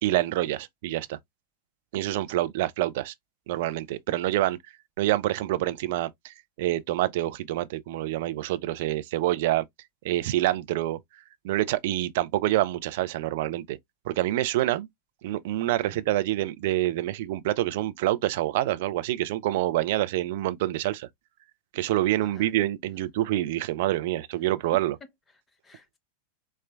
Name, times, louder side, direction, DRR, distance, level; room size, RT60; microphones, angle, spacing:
voice 1, 0.0-1.2 1.9-3.1 3.5-4.6 5.0-9.7 10.0-11.0 11.4-13.8 14.1-14.9 15.2-21.1 21.7-24.9, right 15 dB, 50° right, 0.3 m, -27 dB
voice 2, 22.2-22.5 24.7-26.0, left 3 dB, 15° left, 0.8 m, -50 dB
4.3 x 2.1 x 2.3 m
figure-of-eight pair, 90°, 0 cm